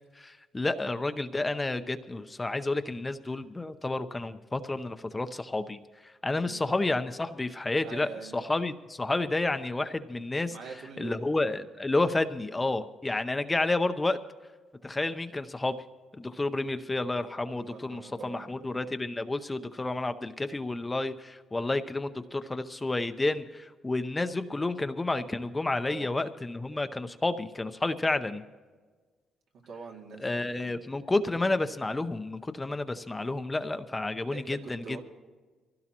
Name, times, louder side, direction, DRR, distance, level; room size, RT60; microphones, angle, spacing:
voice 1, 0.2-10.5 11.0-14.2 14.8-15.8 16.2-28.4 30.2-35.0, left 2 dB, 20° left, 9 dB, 0.7 m, -30 dB
voice 2, 7.8-8.4 10.5-11.2 17.6-18.8 25.9-26.2 29.7-30.8 31.3-31.5 34.3-35.0, right 5 dB, 80° right, 0 dB, 2.3 m, -44 dB
23.5 x 16.5 x 3.0 m, 1.4 s
cardioid pair, 90°, 0 cm